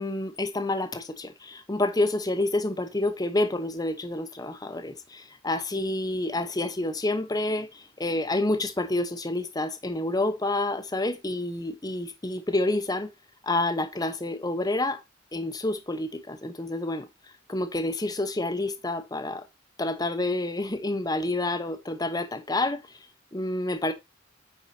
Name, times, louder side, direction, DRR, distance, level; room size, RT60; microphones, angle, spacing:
voice 1, 0.0-13.1 13.4-15.0 15.3-17.1 17.5-19.4 19.8-22.8 23.3-23.9, left 2 dB, 20° left, 0.9 m, -28 dB
9.4 x 4.7 x 2.7 m
head